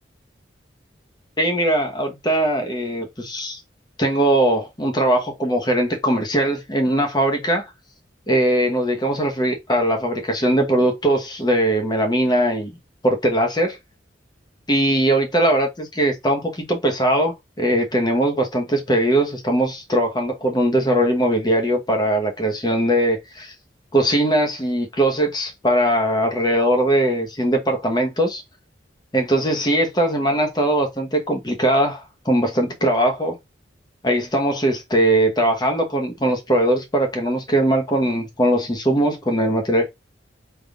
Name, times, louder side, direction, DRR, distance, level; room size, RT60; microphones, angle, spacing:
voice 1, 1.4-3.6 4.0-7.6 8.3-12.7 13.0-13.8 14.7-23.5 23.9-28.4 29.1-33.4 34.0-39.9, right 1 dB, 20° left, 0.9 m, -20 dB
5.1 x 3.5 x 2.3 m
head